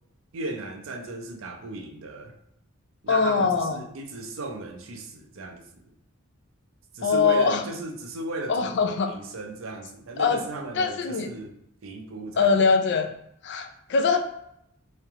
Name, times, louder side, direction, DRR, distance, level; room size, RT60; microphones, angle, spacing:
voice 1, 0.3-2.4 3.0-5.9 6.9-11.6 11.8-12.6, right 2 dB, 70° right, 0.5 m, -36 dB
voice 2, 3.1-3.8 7.0-7.6 8.5-9.1 10.2-10.4 10.8-11.3 12.4-13.1 13.4-14.2, left 5 dB, 55° left, 0.4 m, -22 dB
3.2 x 2.8 x 3.5 m
head